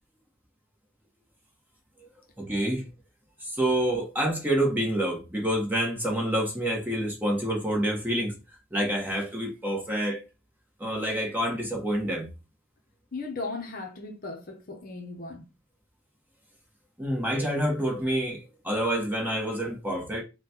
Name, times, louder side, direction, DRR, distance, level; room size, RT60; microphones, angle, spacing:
voice 1, 2.4-2.9 3.4-8.3 8.7-10.2 10.8-12.3 17.0-20.2, right 1 dB, 10° right, 1.0 m, -27 dB
voice 2, 13.1-15.5, left 3 dB, 45° left, 0.7 m, -37 dB
4.1 x 2.2 x 4.2 m
head